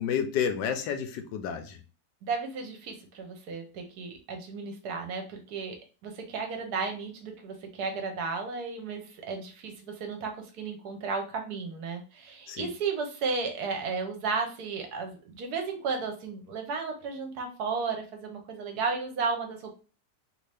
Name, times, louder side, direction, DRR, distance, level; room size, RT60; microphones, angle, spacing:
voice 1, 0.0-1.8 12.5-12.7, left 8 dB, 85° left, 7 dB, 1.2 m, -30 dB
voice 2, 2.2-5.8 6.0-19.7, right 4 dB, 70° right, 4 dB, 1.1 m, -34 dB
3.1 x 2.6 x 3.3 m, 0.35 s
omnidirectional pair, 1.8 m